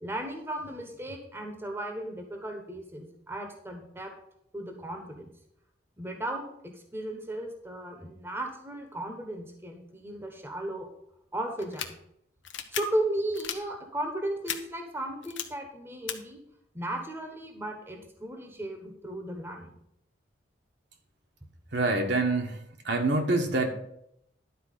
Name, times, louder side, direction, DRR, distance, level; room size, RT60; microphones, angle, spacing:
voice 1, 0.0-4.1 4.5-5.3 6.0-10.9 11.3-12.0 12.7-16.4 16.7-19.8, right 1 dB, 10° right, 3 dB, 1.2 m, -35 dB
sound 1, 11.6-11.9 12.4-12.8 13.3-13.6 14.5-14.6 15.2-15.4 16.1-16.2, left 9 dB, 70° left, 1.0 m, -34 dB
voice 2, 21.7-22.6 22.8-23.7, right 2 dB, 60° right, 3 dB, 1.4 m, -26 dB
11.0 x 4.7 x 6.6 m, 0.74 s
head